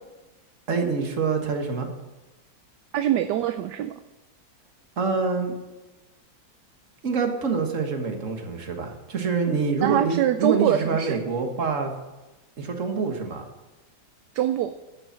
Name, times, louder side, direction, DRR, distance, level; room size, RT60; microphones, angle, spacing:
voice 1, 0.7-1.9 5.0-5.6 7.0-11.9 12.6-13.5, right 5 dB, 45° right, 4 dB, 1.8 m, -26 dB
voice 2, 2.9-3.9 9.8-11.2 14.3-14.7, right 11 dB, 70° right, 9 dB, 1.1 m, -23 dB
13.0 x 6.6 x 7.4 m, 1.1 s
omnidirectional pair, 2.1 m